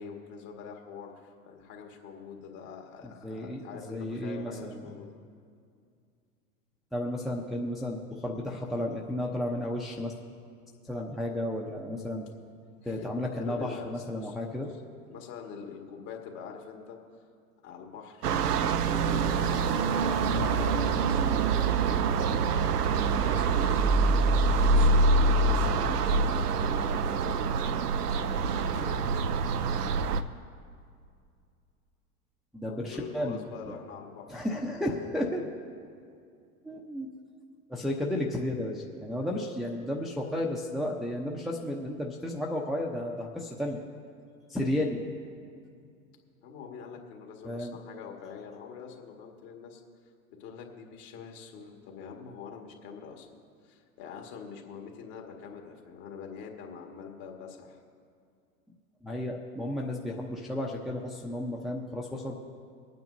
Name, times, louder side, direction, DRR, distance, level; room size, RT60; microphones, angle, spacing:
voice 1, 0.0-5.1 12.8-13.1 13.3-14.4 14.7-14.8 15.1-17.0 17.6-18.3 18.9-22.3 23.2-24.0 24.5-27.9 28.5-29.4 32.6-34.3 35.3-35.5 39.2-39.6 46.4-49.8 50.4-53.3 53.6-57.8, left 6 dB, 50° left, 1 dB, 2.1 m, -44 dB
voice 2, 3.0-4.8 6.9-10.1 10.8-12.2 12.9-14.7 20.3-20.5 32.5-33.4 33.7-33.8 34.3-35.5 36.6-37.1 37.7-43.8 44.5-45.0 47.4-47.8 59.0-62.3, left 1 dB, ahead, -2 dB, 0.8 m, -33 dB
sound 1, 18.2-30.2, right 4 dB, 80° right, 0.7 m, -25 dB
24.0 x 9.2 x 2.7 m, 2.3 s
hypercardioid pair, 95°, 46 cm